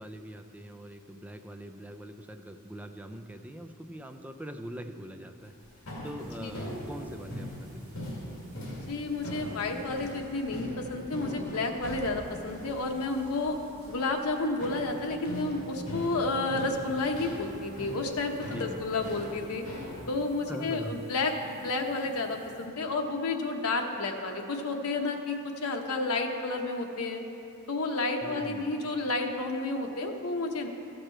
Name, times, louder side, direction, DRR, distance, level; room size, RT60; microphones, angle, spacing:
voice 1, 0.0-5.5 6.0-8.0 18.4-18.8 20.5-21.0 28.2-28.7, right 1 dB, 5° right, 6 dB, 0.4 m, -42 dB
sound 1, 5.4-20.0, equal, 65° left, 2.1 m, -41 dB
sound 2, 6.2-22.7, right 1 dB, 40° right, 2.6 m, -55 dB
voice 2, 8.9-13.6 13.9-19.6 20.1-27.2 27.7-30.7, left 3 dB, 85° left, 3 dB, 0.9 m, -31 dB
13.5 x 6.6 x 4.4 m, 2.7 s
head